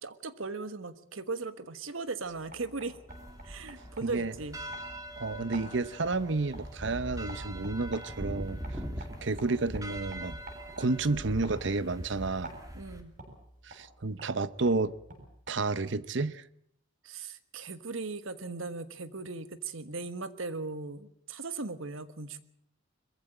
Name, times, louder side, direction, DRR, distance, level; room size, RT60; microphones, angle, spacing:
voice 1, 0.0-3.0 3.4-4.6 12.7-13.1 17.0-22.4, right 3 dB, 75° right, 1.4 m, -38 dB
sound 1, 2.2-16.0, right 1 dB, 40° right, 7.0 m, -50 dB
sound 2, 3.1-13.0, right 1 dB, 15° right, 2.5 m, -42 dB
voice 2, 4.0-4.3 5.2-8.6 9.2-10.4 10.8-12.5 13.6-14.9 15.5-16.4, right 3 dB, 60° right, 0.8 m, -31 dB
21.5 x 15.0 x 8.8 m
head